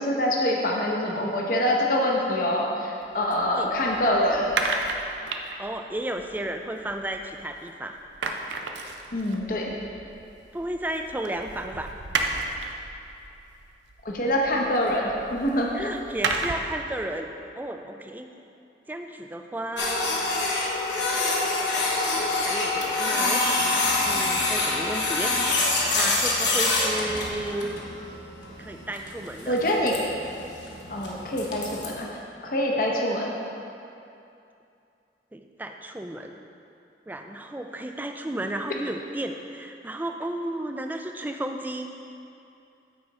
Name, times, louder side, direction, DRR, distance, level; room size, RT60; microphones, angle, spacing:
voice 1, 0.0-4.5 9.1-9.7 14.0-15.9 29.5-29.9 30.9-32.1 32.4-33.3, left 1 dB, 50° left, -2 dB, 0.8 m, -25 dB
sound 1, 3.0-7.7 7.9-16.8, right 3 dB, 85° right, 0.6 m, -34 dB
voice 2, 5.6-8.0 10.5-11.9 15.7-18.3 18.9-20.3 22.4-23.4 24.0-25.3 25.8-27.8 28.6-29.6 35.3-36.4 37.1-41.9, right 1 dB, 10° right, 5 dB, 0.3 m, -33 dB
Printer, 19.8-31.9, left 2 dB, 85° left, 1.1 m, -26 dB
8.6 x 4.9 x 4.1 m, 2.6 s
head